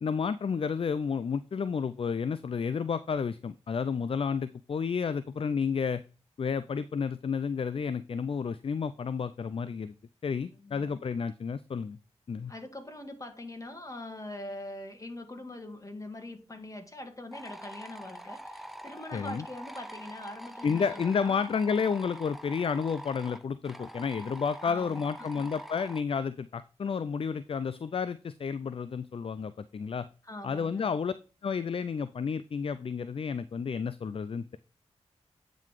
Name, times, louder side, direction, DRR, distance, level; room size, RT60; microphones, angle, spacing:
voice 1, 0.0-6.0 6.4-9.9 10.2-12.0 12.3-12.5 19.1-19.4 20.6-30.1 30.4-31.1 31.4-34.6, left 6 dB, 50° left, 0.4 m, -31 dB
voice 2, 10.6-11.0 12.5-21.4 24.6-25.5 30.2-30.8, left 1 dB, 25° left, 2.0 m, -43 dB
sound 1, 17.3-26.0, equal, ahead, 0.8 m, -45 dB
9.0 x 3.9 x 4.7 m
cardioid pair, 40°, 12 cm